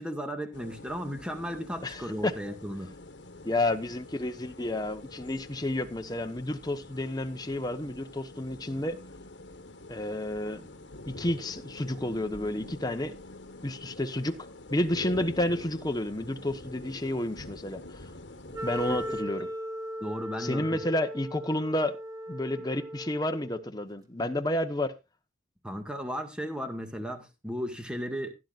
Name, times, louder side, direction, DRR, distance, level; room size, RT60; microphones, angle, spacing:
voice 1, 0.0-2.9 18.9-19.0 20.0-20.8 25.6-28.3, equal, 5° right, 1.9 m, -35 dB
sound 1, 0.5-19.2, left 2 dB, 70° left, 1.5 m, -46 dB
voice 2, 1.8-2.3 3.4-9.0 9.9-10.6 11.1-13.2 13.6-14.4 14.7-18.0 18.6-19.5 20.4-22.0 22.3-24.9, left 1 dB, 20° left, 1.1 m, -30 dB
Wind instrument woodwind instrument, 18.5-23.6, equal, 20° right, 1.7 m, -38 dB
16.5 x 11.0 x 2.5 m
head